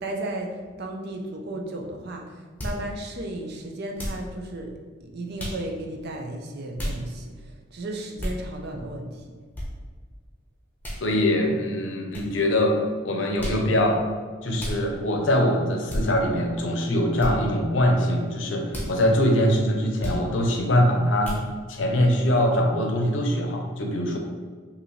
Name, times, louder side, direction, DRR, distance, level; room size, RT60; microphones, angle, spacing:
voice 1, 0.0-4.7 5.0-9.2, right 1 dB, 55° right, 2 dB, 0.6 m, -34 dB
sound 1, 2.6-2.8 4.0-4.3 5.4-5.6 6.8-7.0 8.2-8.4 9.5-9.7 10.8-11.0 12.1-12.3 13.4-13.6 14.6-14.8 15.9-16.0 17.2-17.3 18.7-18.9 20.0-20.2 21.2-21.4, equal, 10° left, 0.8 m, -31 dB
voice 2, 11.0-12.8 13.0-14.0 14.4-21.3 21.7-24.2, left 1 dB, 70° left, 2 dB, 0.7 m, -23 dB
5.2 x 2.7 x 3.1 m, 1.5 s
head